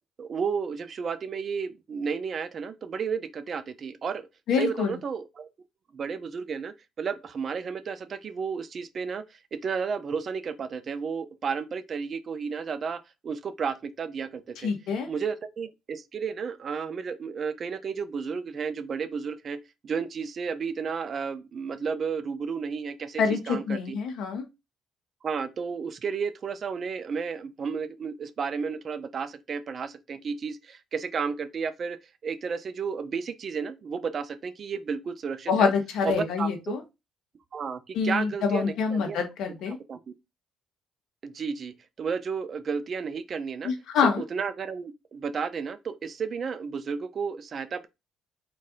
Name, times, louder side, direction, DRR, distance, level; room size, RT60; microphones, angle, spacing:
voice 1, 0.2-4.3 4.6-5.5 5.9-14.7 15.0-19.6 19.8-24.0 25.2-32.0 32.2-35.7 36.0-36.5 37.5-39.2 39.9-40.1 41.2-43.7 44.2-47.9, right 6 dB, 45° right, 0.5 m, -32 dB
voice 2, 4.5-4.9 14.6-15.1 23.2-24.4 35.5-36.8 37.9-39.8 43.6-44.2, left 6 dB, 70° left, 1.3 m, -26 dB
4.1 x 3.2 x 3.7 m
cardioid pair, 100°, 0 cm